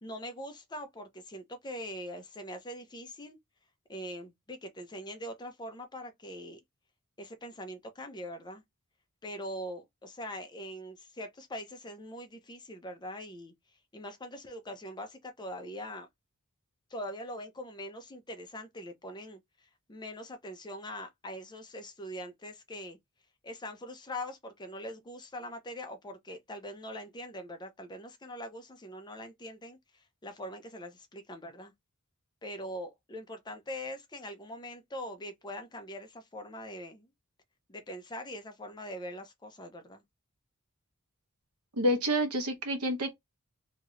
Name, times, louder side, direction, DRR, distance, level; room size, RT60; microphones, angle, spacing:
voice 1, 0.0-3.4 3.9-6.6 7.2-8.6 9.2-13.5 13.9-16.1 16.9-23.0 23.4-31.7 32.4-37.1 37.7-40.0, equal, 20° left, 0.6 m, -42 dB
voice 2, 41.8-43.1, equal, 85° right, 1.0 m, -28 dB
2.9 x 2.4 x 3.1 m
head